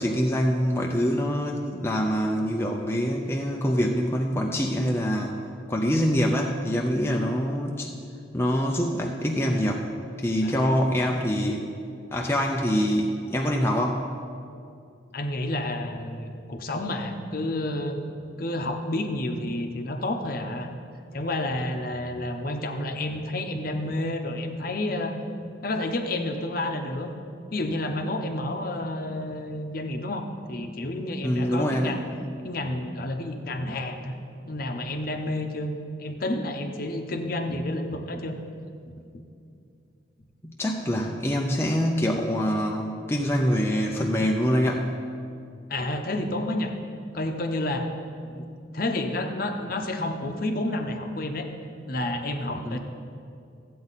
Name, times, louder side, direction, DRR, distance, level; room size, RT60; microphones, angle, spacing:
voice 1, 0.0-5.4 5.7-7.9 8.3-9.9 10.2-11.7 12.1-14.0 31.2-31.9 40.4-44.9 52.6-52.8, equal, 10° left, 0 dB, 0.5 m, -25 dB
voice 2, 10.4-10.7 15.1-18.0 18.4-20.7 21.1-25.1 25.6-27.1 27.5-32.0 32.4-34.1 34.5-35.7 36.0-38.4 45.7-46.7 47.1-47.9 48.2-48.4 48.7-51.5 51.9-52.8, left 1 dB, 45° left, 5 dB, 0.8 m, -30 dB
14.0 x 8.5 x 4.1 m, 2.4 s
head